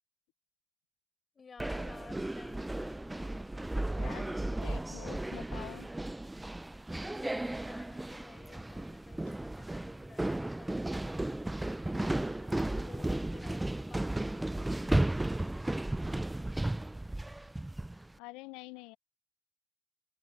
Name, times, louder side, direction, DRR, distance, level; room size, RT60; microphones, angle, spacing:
voice 1, 1.3-3.5 3.9-4.6 5.0-5.3 7.0-10.8 11.3-15.0, left 5 dB, 30° left, 4.4 m, -55 dB
sound 1, 1.6-18.1, right 1 dB, 10° right, 0.5 m, -34 dB
voice 2, 4.6-5.9 18.2-19.0, left 23 dB, 75° left, 0.6 m, -46 dB
open air
supercardioid pair, 80°, 0 cm